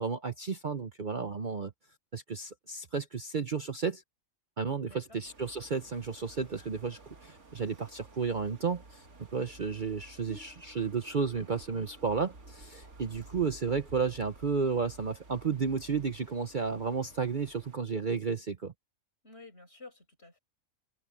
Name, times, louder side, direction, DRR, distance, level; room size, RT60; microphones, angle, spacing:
voice 1, 0.0-1.7 2.1-4.0 4.6-9.0 9.3-18.7, right 5 dB, 40° right, 0.9 m, -32 dB
voice 2, 4.8-5.2 19.2-20.4, left 3 dB, 50° left, 7.4 m, -52 dB
sound 1, 5.2-17.8, right 2 dB, 60° right, 2.6 m, -53 dB
omnidirectional pair, 1.4 m